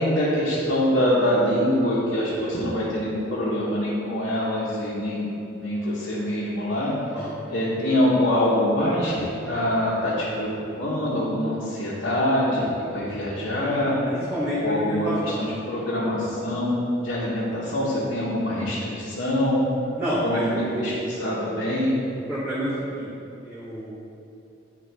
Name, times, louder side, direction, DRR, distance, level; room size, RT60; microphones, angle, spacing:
voice 1, 0.0-10.5 10.8-14.0 14.6-16.8 17.0-19.7 20.2-22.0, left 1 dB, 75° left, -9 dB, 1.1 m, -24 dB
voice 2, 14.1-15.4 20.0-20.9 22.3-23.1 23.4-24.0, equal, 10° right, -11 dB, 1.0 m, -28 dB
9.2 x 3.4 x 3.4 m, 2.7 s
head